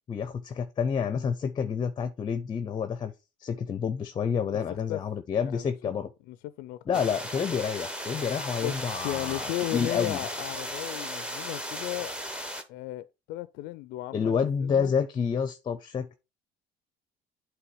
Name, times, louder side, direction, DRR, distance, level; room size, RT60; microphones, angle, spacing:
voice 1, 0.1-3.1 3.4-6.1 6.9-10.2 14.1-16.1, left 6 dB, 30° left, 0.6 m, -29 dB
voice 2, 4.7-5.0 5.5-5.9 6.3-6.8 8.6-12.1 12.7-14.9, left 16 dB, 80° left, 0.4 m, -35 dB
sound 1, 6.9-12.6, equal, 5° right, 0.9 m, -36 dB
8.3 x 3.2 x 4.8 m
cardioid pair, 125°, 15 cm